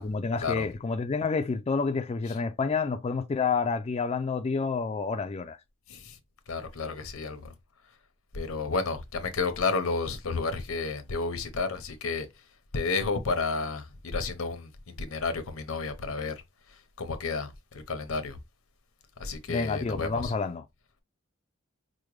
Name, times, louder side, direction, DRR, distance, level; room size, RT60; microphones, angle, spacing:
voice 1, 0.0-5.6 19.5-20.6, left 4 dB, 30° left, 0.3 m, -29 dB
voice 2, 5.9-6.2 6.5-7.5 8.3-12.4 12.7-16.3 16.7-18.4 19.2-20.3, left 4 dB, 85° left, 0.8 m, -31 dB
4.9 x 2.1 x 3.1 m
head